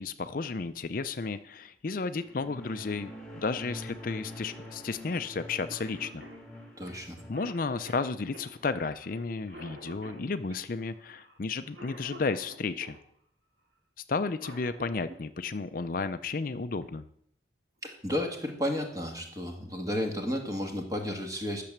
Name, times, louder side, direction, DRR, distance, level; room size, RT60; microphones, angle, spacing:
voice 1, 0.0-6.2 6.9-13.0 14.1-17.0, left 4 dB, 50° left, 10 dB, 0.5 m, -33 dB
sound 1, 2.1-8.7, equal, 5° left, 2.0 m, -46 dB
Cough, 5.4-5.5 5.7-13.0 14.1-15.2 16.8-16.9 18.0-18.2 18.7-18.8 19.2-19.6, equal, 75° right, 2.6 m, -49 dB
voice 2, 6.8-7.2 17.8-21.6, left 1 dB, 20° right, 3 dB, 1.8 m, -32 dB
12.0 x 6.8 x 7.3 m, 0.70 s
head